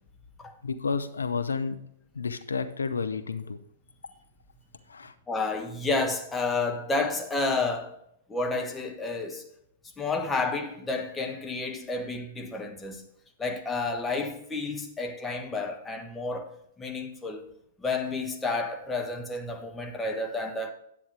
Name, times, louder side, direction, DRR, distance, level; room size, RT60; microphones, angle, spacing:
voice 1, 0.6-1.8 2.1-3.6 4.9-5.1, left 5 dB, 80° left, 0.6 m, -31 dB
voice 2, 5.3-8.0 8.3-9.4 10.0-13.0 13.4-17.4 17.8-20.7, left 3 dB, 10° left, 1.3 m, -30 dB
10.0 x 8.5 x 3.3 m
figure-of-eight pair, 110°, 0 cm